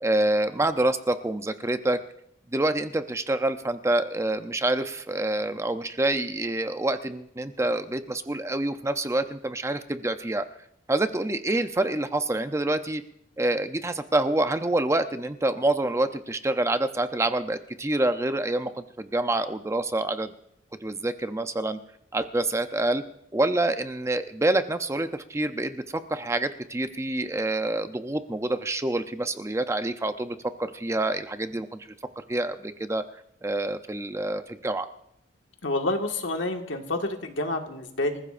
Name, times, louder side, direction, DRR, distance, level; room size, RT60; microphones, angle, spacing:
voice 1, 0.0-2.0 2.5-10.4 10.9-13.0 13.4-20.3 20.8-21.8 22.1-23.0 23.3-25.8 26.1-31.9 32.2-33.0 33.4-34.9, right 2 dB, 15° right, 9 dB, 0.5 m, -27 dB
voice 2, 35.6-38.2, left 2 dB, 80° left, 4 dB, 1.7 m, -28 dB
26.5 x 15.0 x 2.5 m, 0.77 s
head